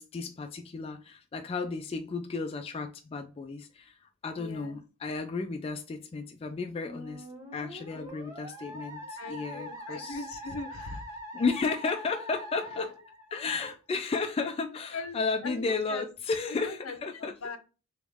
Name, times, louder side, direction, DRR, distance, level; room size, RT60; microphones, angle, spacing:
voice 1, 0.0-7.3 7.5-10.3 11.3-12.9 13.3-17.4, left 4 dB, 25° left, 0.3 m, -33 dB
voice 2, 4.3-4.8 7.9-8.1 9.2-11.2 12.8-12.9 13.4-13.5 14.9-16.1 16.5-17.6, left 3 dB, 75° left, 0.6 m, -40 dB
Musical instrument, 6.9-13.7, equal, 15° right, 0.9 m, -43 dB
3.5 x 3.0 x 3.4 m
head